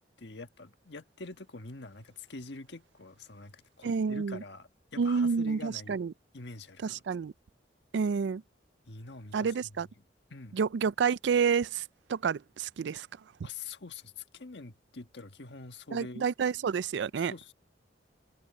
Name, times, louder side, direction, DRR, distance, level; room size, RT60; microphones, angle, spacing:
voice 1, 0.2-6.0 6.3-7.0 8.9-9.7 10.3-10.6 13.4-16.3 17.3-17.5, left 3 dB, 75° left, 1.5 m, -45 dB
voice 2, 3.8-4.4 5.0-6.1 6.8-7.3 7.9-8.4 9.3-9.9 10.5-11.8 12.1-13.1 15.9-17.3, right 6 dB, 75° right, 0.4 m, -29 dB
head